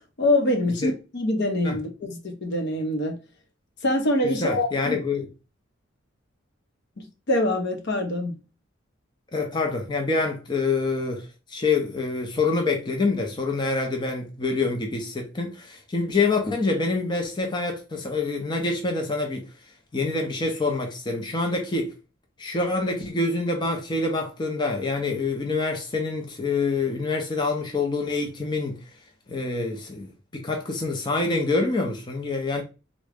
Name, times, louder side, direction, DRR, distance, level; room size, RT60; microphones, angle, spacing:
voice 1, 0.2-3.2 3.8-5.0 7.0-8.3, left 1 dB, 60° left, 0.7 m, -24 dB
voice 2, 4.2-5.3 9.3-19.5 19.9-21.9 22.4-28.9 29.3-32.6, left 3 dB, 25° left, 0.5 m, -26 dB
3.6 x 2.1 x 3.3 m
head